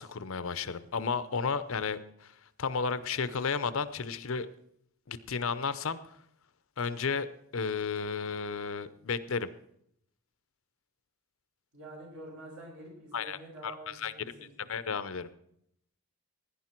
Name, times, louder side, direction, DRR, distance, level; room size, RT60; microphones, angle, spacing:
voice 1, 0.0-2.3 2.6-4.5 5.1-6.0 6.8-7.3 7.5-9.5 13.1-13.4 13.6-15.3, left 5 dB, 65° left, 14 dB, 0.7 m, -33 dB
voice 2, 11.7-14.7, right 1 dB, 70° right, -2 dB, 6.1 m, -47 dB
17.0 x 10.0 x 4.5 m, 0.72 s
head